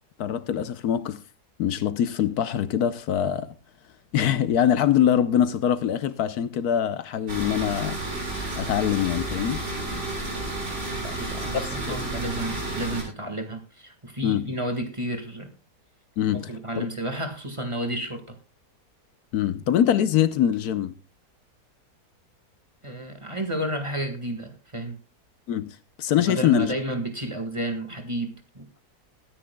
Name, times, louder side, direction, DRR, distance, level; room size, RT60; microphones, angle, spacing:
voice 1, 0.2-1.2 1.6-3.5 4.1-8.0 8.5-9.9 11.9-12.0 14.2-14.4 16.2-16.5 16.8-16.9 19.3-20.9 25.5-26.8, left 10 dB, 75° left, 1.2 m, -23 dB
sound 1, 7.3-13.0, right 2 dB, 85° right, 4.6 m, -31 dB
voice 2, 10.9-15.5 16.3-18.4 22.8-25.0 26.2-28.7, right 1 dB, 20° right, 1.7 m, -31 dB
21.5 x 10.0 x 2.2 m
omnidirectional pair, 1.7 m